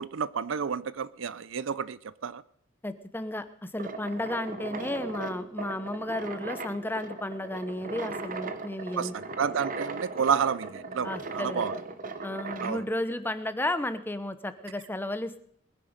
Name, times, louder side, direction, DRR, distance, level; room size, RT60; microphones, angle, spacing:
voice 1, 0.0-2.4 9.0-11.8 12.6-12.8, right 7 dB, 70° right, 18 dB, 0.5 m, -30 dB
voice 2, 2.8-9.1 11.0-11.7 12.2-15.4, left 1 dB, 10° left, 11 dB, 0.8 m, -33 dB
sound 1, 3.7-12.8, right 3 dB, 40° right, 1.1 m, -38 dB
21.0 x 10.0 x 5.1 m, 0.66 s
head